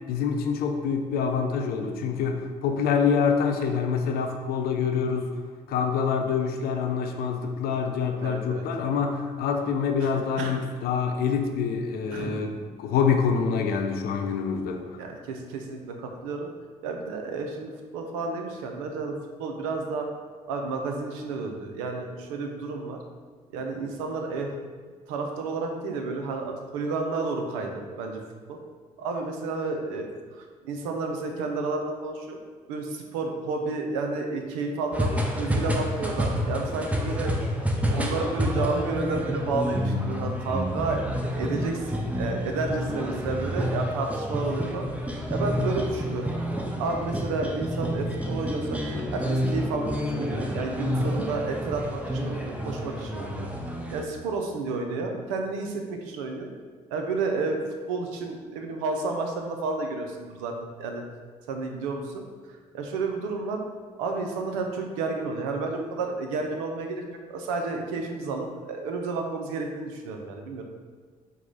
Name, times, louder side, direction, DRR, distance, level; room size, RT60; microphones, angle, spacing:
voice 1, 0.1-5.3 5.7-15.0, left 6 dB, 65° left, 5 dB, 0.5 m, -26 dB
voice 2, 8.2-8.6 10.0-10.6 12.1-12.4 15.0-16.5 16.8-20.1 20.5-23.0 23.5-24.5 25.1-28.2 28.5-28.6 29.0-32.4 32.7-35.1 35.4-37.3 37.9-41.0 41.3-44.9 45.3-46.3 46.8-48.8 49.1-53.5 53.9-56.5 56.9-57.6 57.9-61.0 61.5-63.6 64.0-70.6, right 3 dB, 85° right, 3 dB, 0.5 m, -31 dB
sound 1, 34.9-54.0, equal, 10° right, 0.6 m, -29 dB
4.8 x 2.2 x 3.9 m, 1.5 s
hypercardioid pair, 55°, 17 cm